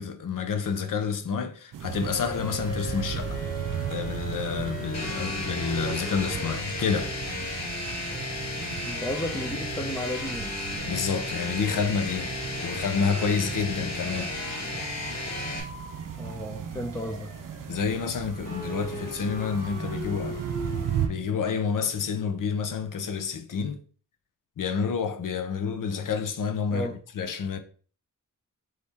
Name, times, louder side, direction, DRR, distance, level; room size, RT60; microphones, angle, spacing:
voice 1, 0.0-3.4 3.9-7.1 10.9-14.3 17.7-20.4 21.1-23.8 24.6-26.9 27.1-27.6, left 6 dB, 80° left, 0.6 m, -29 dB
sound 1, 1.7-21.1, right 9 dB, 80° right, 0.5 m, -37 dB
sound 2, 1.9-8.5 8.9-21.1, equal, 25° left, 1.8 m, -41 dB
sound 3, 4.9-15.6, left 2 dB, 55° left, 1.6 m, -34 dB
voice 2, 8.8-10.6 14.1-14.3 16.2-17.3 26.7-27.0, left 1 dB, 10° left, 0.5 m, -34 dB
3.5 x 3.3 x 4.1 m
wide cardioid pair, 130°, 32 cm